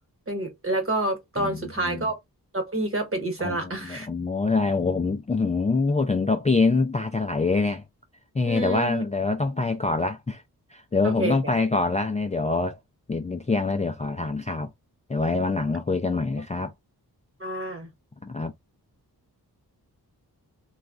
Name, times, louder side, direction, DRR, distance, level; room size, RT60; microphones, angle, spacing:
voice 1, 0.3-2.1 2.5-4.1 8.4-9.0 11.0-11.5 17.4-17.9, right 2 dB, 35° right, 1.2 m, -28 dB
voice 2, 1.4-2.1 3.4-7.8 8.3-10.4 10.7-12.8 13.1-14.7 15.1-16.7 18.3-18.5, left 3 dB, 20° left, 0.3 m, -25 dB
3.1 x 2.3 x 2.4 m
wide cardioid pair, 100°, 38 cm